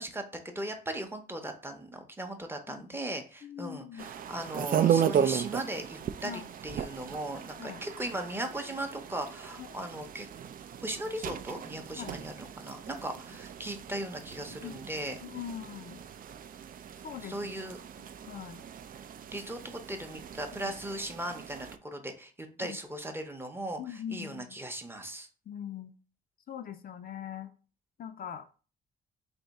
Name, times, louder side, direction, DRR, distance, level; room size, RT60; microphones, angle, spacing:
voice 1, 0.0-10.3 10.8-15.2 17.2-17.8 19.3-25.3, right 1 dB, 10° right, 5 dB, 0.7 m, -38 dB
voice 2, 3.4-4.1 6.2-6.5 7.6-7.8 9.6-9.8 11.9-12.2 14.6-14.8 15.2-16.0 17.0-17.4 18.3-18.6 22.6-22.8 23.8-24.6 25.5-25.9 26.5-27.5 28.0-28.5, left 9 dB, 50° left, 7 dB, 0.5 m, -41 dB
sound 1, 4.0-21.8, right 9 dB, 45° right, 0.4 m, -35 dB
3.4 x 2.7 x 4.0 m, 0.37 s
cardioid pair, 90°, 20 cm